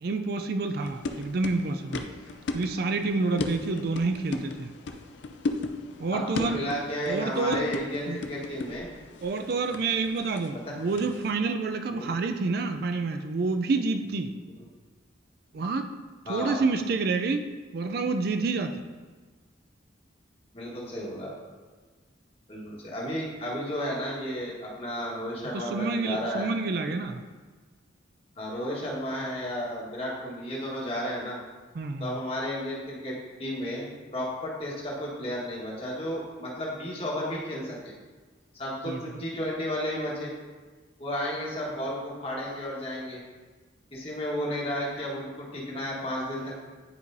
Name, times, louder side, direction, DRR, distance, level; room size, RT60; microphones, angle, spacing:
voice 1, 0.0-2.0 2.5-4.7 6.0-6.6 7.1-7.6 8.1-8.2 9.2-14.3 15.5-15.9 16.3-17.4 17.7-18.8 25.5-27.2 31.7-32.2 38.8-39.0, right 3 dB, 55° right, 7 dB, 0.4 m, -28 dB
sound 1, 0.8-11.3, left 3 dB, 65° left, 0.5 m, -37 dB
voice 2, 6.1-8.9 10.6-10.7 11.9-12.1 16.3-16.6 20.5-21.3 22.5-26.5 28.4-31.4 32.0-33.1 33.4-37.9 38.5-40.3 41.0-43.2 43.9-46.5, equal, 30° left, -4 dB, 1.4 m, -33 dB
9.6 x 4.7 x 2.6 m, 1.4 s
head